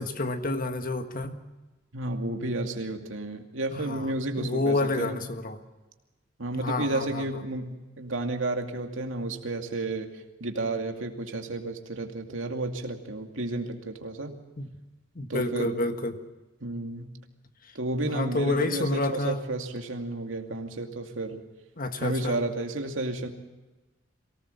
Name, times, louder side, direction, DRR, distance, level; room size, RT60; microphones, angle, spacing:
voice 1, 0.0-1.4 3.8-4.1 4.4-5.6 6.6-7.2 14.6-14.7 15.1-16.2 18.0-19.4 21.8-22.4, left 2 dB, 45° left, 7 dB, 1.6 m, -29 dB
voice 2, 1.9-5.3 6.4-14.4 15.3-15.9 16.6-17.1 17.7-21.4 22.0-23.3, right 2 dB, 90° right, 4 dB, 2.4 m, -32 dB
24.0 x 18.0 x 6.9 m, 1.1 s
head